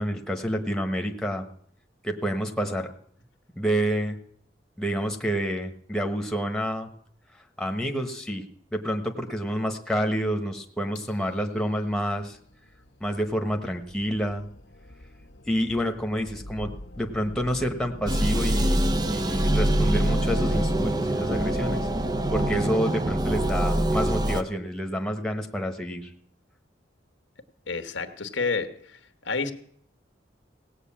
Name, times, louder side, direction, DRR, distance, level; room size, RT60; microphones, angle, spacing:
voice 1, 0.0-1.4 2.0-2.9 3.6-4.2 4.8-6.9 7.6-8.4 8.7-12.4 13.0-14.5 15.4-18.8 19.1-21.9 22.3-26.1, equal, 5° left, 3 dB, 1.2 m, -28 dB
sound 1, 11.0-22.5, left 1 dB, 70° left, 1.0 m, -42 dB
sound 2, 18.1-24.4, right 1 dB, 20° right, 0.6 m, -24 dB
voice 2, 27.7-29.5, left 4 dB, 90° left, 8 dB, 1.3 m, -30 dB
17.5 x 6.5 x 8.7 m, 0.62 s
head